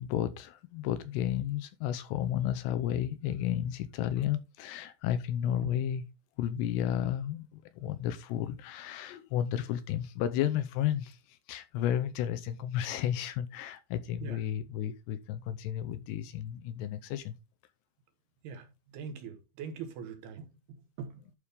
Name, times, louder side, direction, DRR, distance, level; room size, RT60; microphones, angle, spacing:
voice 1, 0.0-6.0 6.4-17.4, left 10 dB, 85° left, 2.5 m, -32 dB
voice 2, 18.4-21.3, right 6 dB, 70° right, 2.8 m, -43 dB
12.0 x 5.0 x 3.5 m
omnidirectional pair, 5.3 m